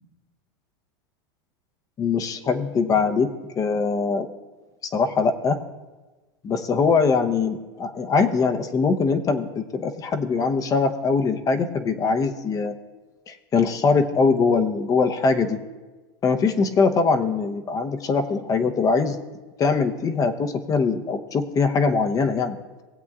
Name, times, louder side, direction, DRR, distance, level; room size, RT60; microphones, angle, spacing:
voice 1, 2.0-3.3 3.6-4.3 4.8-5.6 6.4-12.7 13.3-15.6 16.2-19.2 19.6-22.6, left 4 dB, 30° left, 8 dB, 0.8 m, -22 dB
19.0 x 8.0 x 2.4 m, 1.2 s
supercardioid pair, 115°, 13 cm